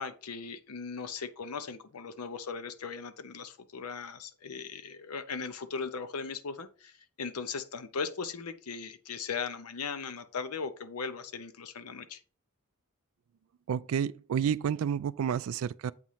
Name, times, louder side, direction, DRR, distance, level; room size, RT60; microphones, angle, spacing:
voice 1, 0.0-12.2, left 5 dB, 85° left, 0.7 m, -38 dB
voice 2, 13.7-15.9, right 8 dB, 70° right, 0.3 m, -30 dB
7.9 x 3.1 x 5.6 m
head